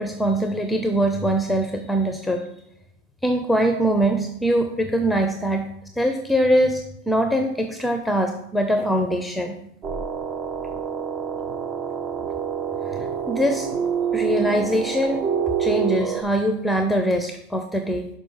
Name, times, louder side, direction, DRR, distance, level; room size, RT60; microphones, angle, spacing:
voice 1, 0.0-2.5 3.2-5.6 6.0-9.6 12.9-13.8 14.1-15.2 15.6-18.1, equal, ahead, 6 dB, 0.6 m, -22 dB
sound 1, 9.8-16.2, right 7 dB, 40° right, 0.7 m, -27 dB
6.1 x 4.6 x 5.5 m, 0.79 s
hypercardioid pair, 105°, 0 cm